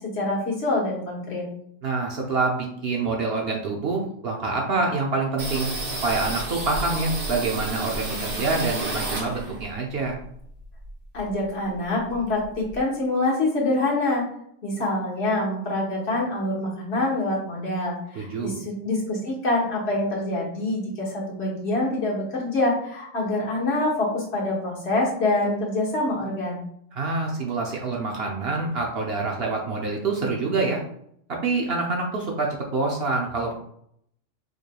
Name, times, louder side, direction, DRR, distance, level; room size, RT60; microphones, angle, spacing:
voice 1, 0.1-1.4 11.1-14.2 14.6-26.6, left 2 dB, 55° left, -4 dB, 1.4 m, -25 dB
voice 2, 1.8-10.2 18.1-18.5 26.9-30.8 31.3-33.5, right 3 dB, 55° right, -1 dB, 0.8 m, -26 dB
sound 1, 5.4-9.7 10.1-11.4 11.7-11.8 12.1-12.8, right 2 dB, 75° right, 1.5 m, -31 dB
4.8 x 3.1 x 2.2 m, 0.69 s
omnidirectional pair, 1.4 m